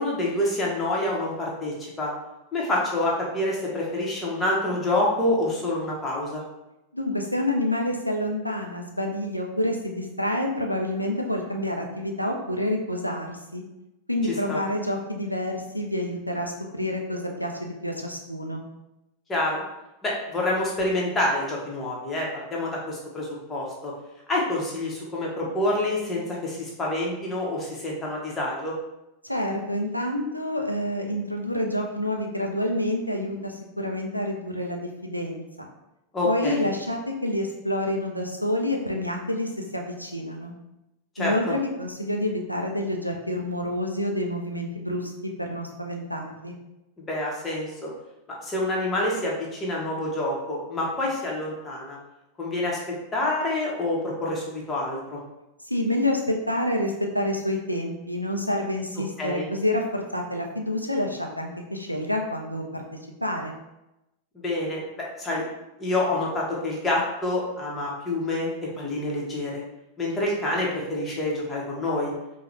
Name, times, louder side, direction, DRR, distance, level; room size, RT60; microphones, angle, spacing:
voice 1, 0.0-2.1 2.5-6.4 14.5-14.6 19.3-19.6 20.0-23.9 24.3-28.7 36.1-36.7 41.1-41.3 47.1-47.9 48.3-52.0 52.4-52.8 53.1-55.2 59.2-59.4 64.3-65.4 65.8-69.6 70.0-72.1, left 1 dB, 20° left, -4 dB, 1.2 m, -27 dB
voice 2, 6.9-13.6 14.1-18.6 29.2-35.7 36.2-40.5 41.2-46.5 55.6-62.8 63.2-63.5, left 1 dB, 90° left, 1 dB, 0.5 m, -28 dB
4.8 x 2.3 x 3.3 m, 0.93 s
figure-of-eight pair, 90°, 0 cm